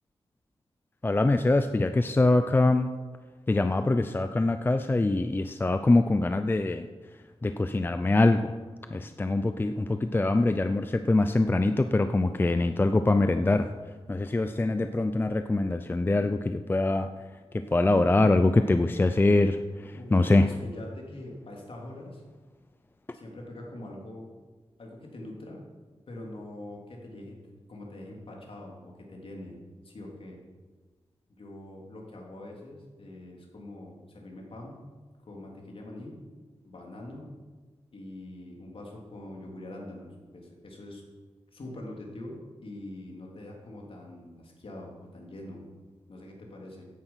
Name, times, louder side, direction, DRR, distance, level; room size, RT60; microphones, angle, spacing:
voice 1, 1.0-2.9 3.5-6.9 7.4-8.5 8.9-13.7 14.1-17.1 17.5-20.4, left 2 dB, 20° left, 9 dB, 0.5 m, -24 dB
voice 2, 19.9-22.2 23.1-24.3 24.8-25.6 26.1-27.4 27.7-29.6 29.8-30.4 31.3-34.8 35.3-36.2 36.6-37.3 37.9-41.0 41.5-45.6 46.1-46.8, left 1 dB, 55° left, -1 dB, 3.5 m, -43 dB
15.5 x 10.5 x 5.8 m, 1.4 s
wide cardioid pair, 140°, 11 cm